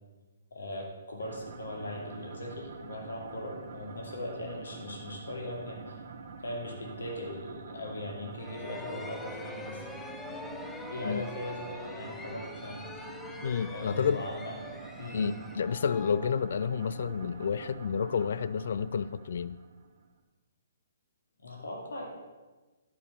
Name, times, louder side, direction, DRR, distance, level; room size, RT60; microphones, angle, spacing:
voice 1, 0.5-6.0 6.4-9.8 10.9-12.8 13.7-15.3 21.4-22.1, left 1 dB, 80° left, 2.5 m, -39 dB
sound 1, 1.2-20.1, right 4 dB, 60° right, 1.3 m, -46 dB
sound 2, 8.4-17.0, left 3 dB, 10° left, 0.7 m, -45 dB
voice 2, 13.4-14.2 15.1-19.6, left 6 dB, 65° left, 0.4 m, -30 dB
11.5 x 5.4 x 6.8 m
hypercardioid pair, 140°, 0 cm